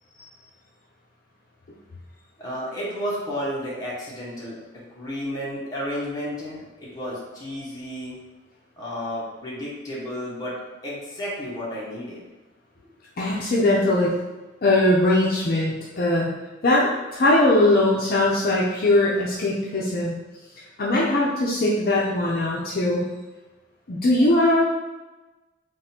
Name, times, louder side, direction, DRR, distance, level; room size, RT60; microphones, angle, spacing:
voice 1, 2.4-4.6 4.9-8.1 8.8-10.5 10.8-12.2, equal, 20° left, -7 dB, 1.2 m, -32 dB
voice 2, 13.2-14.2 14.6-16.3 16.6-20.1 20.8-23.0 23.9-24.6, left 1 dB, 50° left, -5 dB, 0.5 m, -20 dB
3.8 x 2.5 x 4.2 m, 1.1 s
head